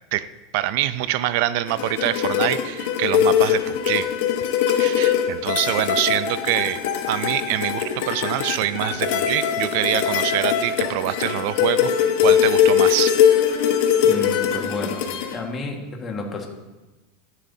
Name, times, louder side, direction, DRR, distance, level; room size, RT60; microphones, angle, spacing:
voice 1, 0.5-4.1 4.7-6.8 7.1-13.2, right 14 dB, 60° right, 14 dB, 0.5 m, -25 dB
sound 1, 1.7-15.3, left 9 dB, 65° left, 1.2 m, -21 dB
voice 2, 14.0-15.0 15.3-16.5, left 2 dB, 25° left, 1 dB, 1.6 m, -30 dB
13.0 x 11.0 x 2.8 m, 1.1 s
supercardioid pair, 155°, 0 cm